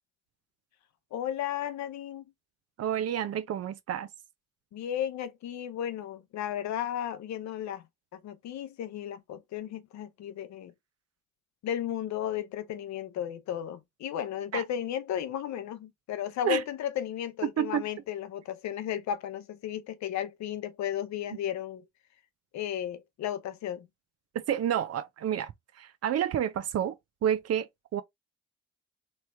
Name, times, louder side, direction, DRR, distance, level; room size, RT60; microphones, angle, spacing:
voice 1, 1.1-2.2 4.7-7.8 8.1-10.7 11.6-21.8 22.5-23.9, left 10 dB, 65° left, 0.8 m, -34 dB
voice 2, 2.8-4.1 14.5-14.6 16.4-16.6 17.6-17.8 24.3-25.5 25.8-27.0 27.2-28.0, right 10 dB, 55° right, 0.6 m, -29 dB
3.1 x 2.9 x 3.4 m
hypercardioid pair, 40°, 30 cm